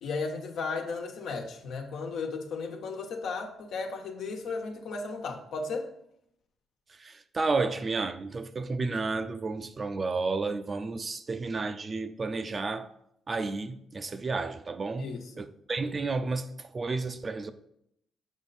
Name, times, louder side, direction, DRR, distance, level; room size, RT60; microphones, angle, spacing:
voice 1, 0.0-5.9 15.0-15.3, left 4 dB, 75° left, 1.3 m, -35 dB
voice 2, 6.9-12.9 13.3-17.5, right 3 dB, 35° right, 0.6 m, -32 dB
7.2 x 5.5 x 4.2 m
cardioid pair, 90°, 0 cm